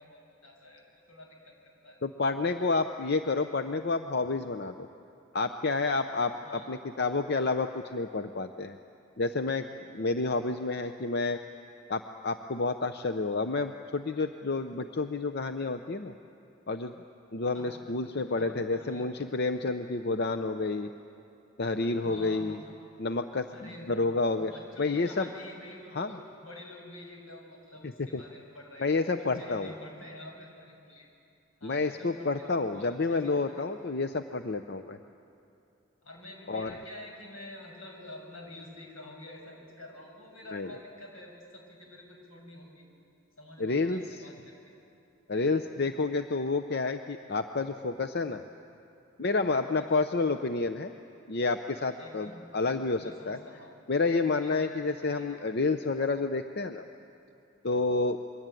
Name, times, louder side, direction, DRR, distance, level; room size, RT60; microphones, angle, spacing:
voice 1, 0.0-2.0 2.5-2.7 6.4-6.8 17.5-19.3 21.9-22.7 23.5-31.1 31.6-33.7 36.0-42.8 43.4-44.7 49.7-50.0 52.0-52.5 53.0-53.7 54.4-55.4, left 1 dB, 80° left, 1 dB, 6.8 m, -48 dB
voice 2, 2.0-4.9 5.3-8.8 9.2-11.4 11.9-16.1 16.7-16.9 17.3-20.9 21.6-22.6 23.0-24.5 24.8-25.3 26.0-26.2 28.0-28.2 28.8-29.7 31.6-35.0 36.5-36.7 40.5-40.7 43.6-44.0 45.3-48.4 49.2-50.9 51.3-53.4 53.9-56.8 57.6-58.2, left 3 dB, 50° left, 8 dB, 0.7 m, -29 dB
27.0 x 23.0 x 9.2 m, 2.6 s
head